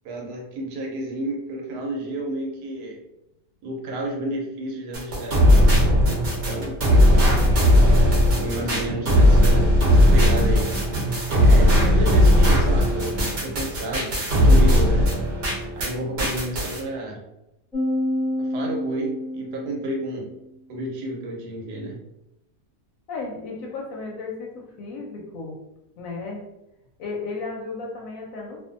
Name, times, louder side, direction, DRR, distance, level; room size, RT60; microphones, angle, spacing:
voice 1, 0.0-3.0 3.6-5.9 6.4-6.7 8.4-9.7 9.9-10.7 11.2-13.1 13.4-15.1 15.7-17.2 18.4-20.3 20.7-22.0, right 1 dB, 80° right, 0 dB, 1.2 m, -31 dB
sound 1, 4.9-15.9 16.2-16.8, equal, 55° right, 0.8 m, -18 dB
voice 2, 6.9-7.9 11.6-11.9 23.1-25.6 26.0-26.4 27.0-28.6, left 3 dB, 70° left, -1 dB, 0.8 m, -35 dB
sound 2, 17.7-20.3, left 1 dB, ahead, 0.8 m, -28 dB
2.6 x 2.4 x 2.5 m, 0.89 s
omnidirectional pair, 1.7 m